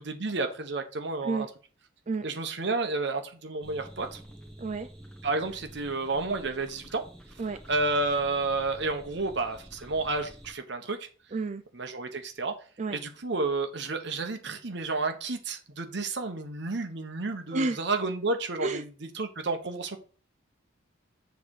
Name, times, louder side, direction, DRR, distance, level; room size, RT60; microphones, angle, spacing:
voice 1, 0.2-1.5 2.2-4.2 5.2-7.0 7.7-11.1 11.7-12.5 12.9-18.9 19.1-20.0, right 3 dB, 60° right, 1.0 m, -31 dB
sound 1, 3.6-10.5, right 1 dB, 5° left, 1.3 m, -49 dB
voice 2, 11.3-11.6 12.8-13.0 17.5-17.8 18.6-18.8, right 3 dB, 40° right, 0.4 m, -30 dB
7.6 x 3.4 x 6.4 m
head